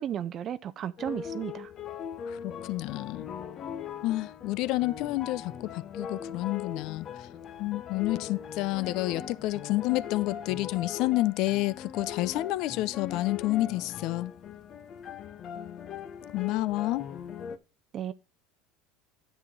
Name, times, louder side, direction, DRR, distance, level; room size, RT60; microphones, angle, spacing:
voice 1, 0.0-1.7 17.9-18.1, right 10 dB, 40° right, 0.6 m, -34 dB
sound 1, 1.0-17.6, left 8 dB, 40° left, 0.9 m, -40 dB
voice 2, 2.3-3.3 4.0-7.3 7.6-14.3 16.3-17.1, left 18 dB, 60° left, 0.6 m, -29 dB
10.5 x 7.8 x 3.8 m
supercardioid pair, 105°, 0 cm